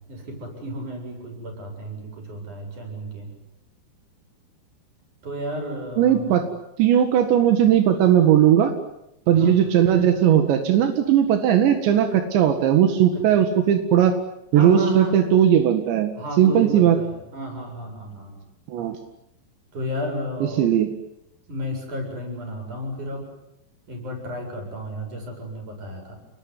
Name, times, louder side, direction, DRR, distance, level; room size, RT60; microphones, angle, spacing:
voice 1, 0.1-3.3 5.2-6.4 9.3-9.6 13.1-13.2 14.5-15.2 16.2-18.5 19.7-20.7 21.5-23.2 23.9-26.2, equal, 45° right, 3 dB, 9.1 m, -32 dB
voice 2, 6.0-6.5 6.8-8.7 9.3-14.2 14.5-16.1 16.4-17.0 18.7-19.0 20.6-20.9, right 10 dB, 85° right, 6 dB, 4.1 m, -18 dB
29.0 x 21.0 x 9.7 m, 0.84 s
omnidirectional pair, 5.0 m